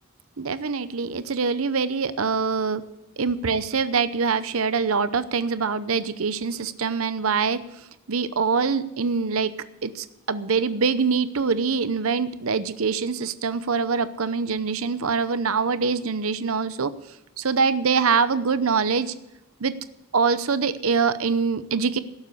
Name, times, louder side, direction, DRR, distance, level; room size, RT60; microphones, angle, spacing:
voice 1, 0.4-2.8 3.2-7.6 8.1-9.6 9.8-16.9 17.4-19.1 19.6-19.7 20.1-22.0, right 5 dB, 70° right, 13 dB, 0.8 m, -24 dB
17.0 x 7.3 x 8.3 m, 0.94 s
head